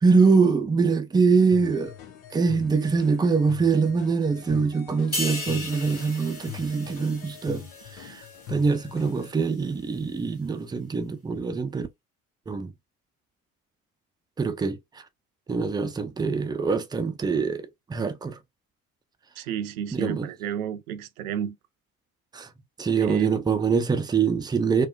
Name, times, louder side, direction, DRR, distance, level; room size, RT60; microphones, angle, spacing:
voice 1, 0.0-1.9 2.3-7.7 7.9-8.2 8.5-11.9 12.5-12.7 14.4-14.8 15.5-18.4 19.9-20.3 22.3-22.5 22.8-24.9, right 5 dB, 10° right, 0.4 m, -24 dB
sound 1, 1.5-9.3, left 11 dB, 60° left, 1.1 m, -42 dB
sound 2, 5.1-8.7 9.0-9.3, left 2 dB, 90° left, 1.0 m, -36 dB
voice 2, 19.4-21.6 22.9-23.4, right 9 dB, 70° right, 0.6 m, -31 dB
4.2 x 2.2 x 2.4 m
figure-of-eight pair, 50°, 44 cm